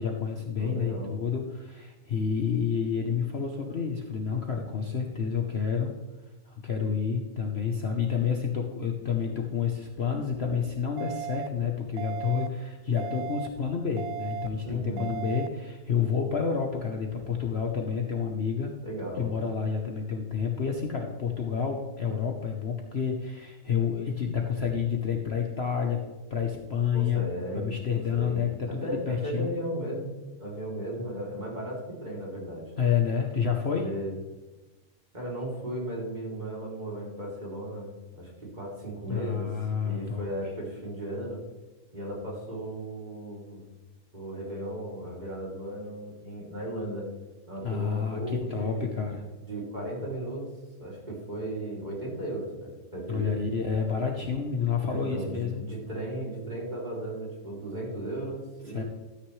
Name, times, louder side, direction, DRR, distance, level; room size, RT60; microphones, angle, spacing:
voice 1, 0.0-5.9 6.5-18.7 19.2-26.0 26.3-27.2 27.5-29.5 32.8-33.9 39.1-40.3 47.6-49.2 53.1-55.6 58.7-58.8, left 6 dB, 45° left, 2 dB, 1.1 m, -29 dB
voice 2, 0.6-1.1 14.6-15.1 18.8-19.3 26.9-30.1 30.4-32.7 33.7-34.2 35.1-39.5 39.8-41.4 41.9-43.7 44.1-47.1 47.5-48.9 49.4-50.5 50.8-53.3 54.9-58.8, right 1 dB, 25° right, -4 dB, 3.2 m, -36 dB
sound 1, 11.0-11.5 12.0-12.5 13.0-13.5 14.0-14.5 15.0-15.5, right 8 dB, 75° right, 1.0 m, -35 dB
13.0 x 9.6 x 3.2 m, 1.2 s
omnidirectional pair, 1.7 m